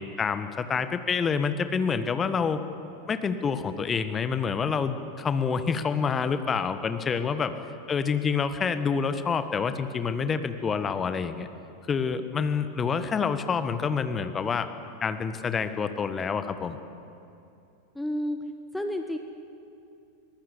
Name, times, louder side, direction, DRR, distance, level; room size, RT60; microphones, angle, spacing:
voice 1, 0.0-2.6 3.1-7.5 7.9-11.5 11.9-14.7 15.0-16.8, left 6 dB, 20° left, 10 dB, 1.5 m, -27 dB
voice 2, 17.9-18.4 18.7-19.2, left 1 dB, 5° left, 6 dB, 1.3 m, -30 dB
23.5 x 20.0 x 8.2 m, 2.6 s
figure-of-eight pair, 85°, 0 cm